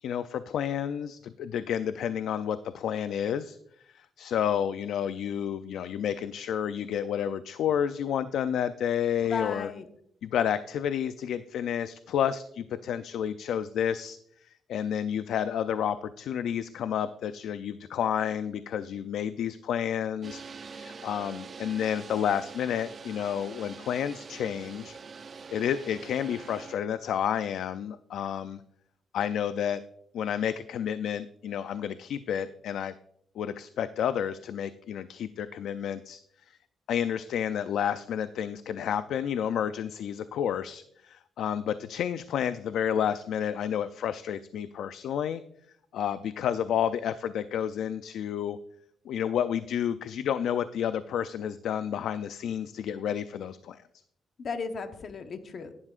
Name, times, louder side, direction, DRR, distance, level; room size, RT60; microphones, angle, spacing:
voice 1, 0.0-3.6 3.9-9.7 10.2-14.2 14.7-20.4 20.7-25.0 25.5-28.6 29.1-29.8 30.1-32.9 33.4-36.2 36.9-45.4 45.9-48.6 49.1-53.8, left 9 dB, 80° left, 12 dB, 0.4 m, -30 dB
voice 2, 9.3-9.9 54.4-55.8, left 5 dB, 50° left, 7 dB, 1.0 m, -35 dB
sound 1, 20.2-26.8, right 5 dB, 35° right, 0.6 m, -44 dB
14.5 x 11.0 x 2.5 m, 0.69 s
cardioid pair, 135°, 0 cm